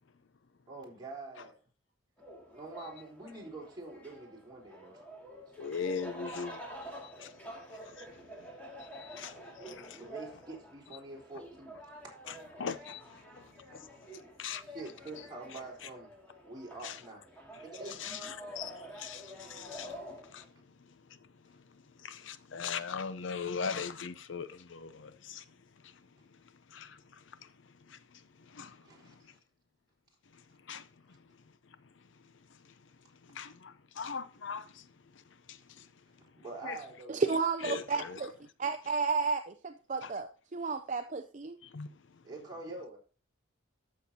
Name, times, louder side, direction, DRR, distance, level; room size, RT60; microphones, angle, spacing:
voice 1, 0.7-1.6 2.4-5.9 9.9-12.1 14.6-16.1 16.4-17.2 17.6-18.3 28.8-29.1 36.4-37.3 42.2-43.0, right 2 dB, 20° right, 3.8 m, -46 dB
sound 1, 2.2-20.4, equal, 10° left, 2.2 m, -48 dB
voice 2, 5.6-6.6 6.9-7.3 7.7-8.5 8.8-10.1 12.3-13.9 14.4-14.6 15.8-15.9 16.8-17.0 18.0-20.0 20.3-20.5 22.0-25.4 25.8-25.9 26.7-27.5 27.9-28.2 28.5-29.1 30.7-30.9 33.2-34.9 35.5-35.9 36.6-36.8 37.6-38.2 40.0-40.1 41.6-41.9, left 6 dB, 70° left, 0.6 m, -41 dB
voice 3, 37.1-38.3 38.6-41.6, right 4 dB, 40° right, 0.5 m, -32 dB
14.0 x 6.7 x 2.8 m
head